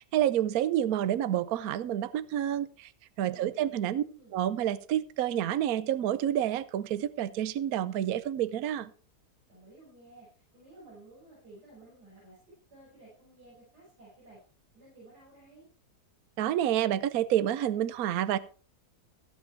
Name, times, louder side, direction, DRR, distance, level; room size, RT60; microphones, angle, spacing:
voice 1, 0.1-2.9 3.2-4.0 4.3-8.9 16.4-18.4, right 11 dB, 70° right, 14 dB, 1.1 m, -28 dB
voice 2, 3.3-4.4 9.5-12.4 12.7-14.4 14.7-15.7, right 2 dB, 85° right, -7 dB, 6.6 m, -54 dB
15.0 x 8.2 x 4.5 m, 0.40 s
omnidirectional pair, 1.7 m